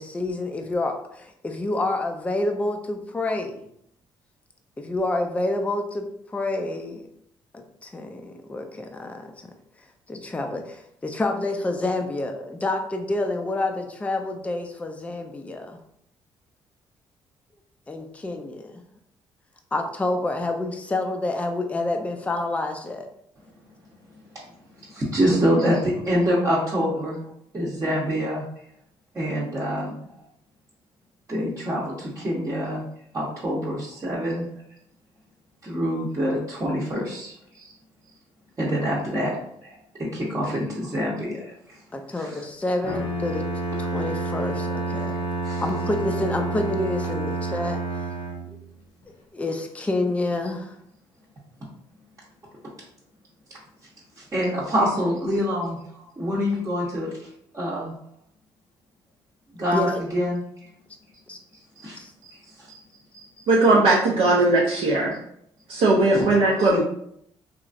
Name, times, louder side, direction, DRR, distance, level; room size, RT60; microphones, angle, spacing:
voice 1, 0.0-3.6 4.8-7.1 7.5-9.3 10.1-15.8 17.9-18.8 19.7-23.1 41.9-43.4 43.8-45.1 45.6-47.8 49.3-50.8 59.7-59.9 61.3-61.4 62.0-62.1 63.4-63.5, left 2 dB, 10° left, 4 dB, 0.4 m, -28 dB
voice 2, 24.9-27.2 27.5-28.4 29.1-30.0 31.3-32.8 33.1-34.5 35.6-37.7 38.6-39.4 40.0-41.5 42.2-42.4 45.4-45.6 54.3-57.3 57.5-57.9 59.5-60.4 61.8-62.4 62.7-62.8 63.1-63.2 66.1-66.8, equal, 30° right, -8 dB, 0.8 m, -26 dB
Bowed string instrument, 42.8-48.7, right 2 dB, 60° left, 0.7 m, -29 dB
voice 3, 63.5-65.2 65.7-66.8, right 2 dB, 70° right, -5 dB, 0.6 m, -18 dB
2.9 x 2.4 x 2.5 m, 0.71 s
cardioid pair, 80°, 11 cm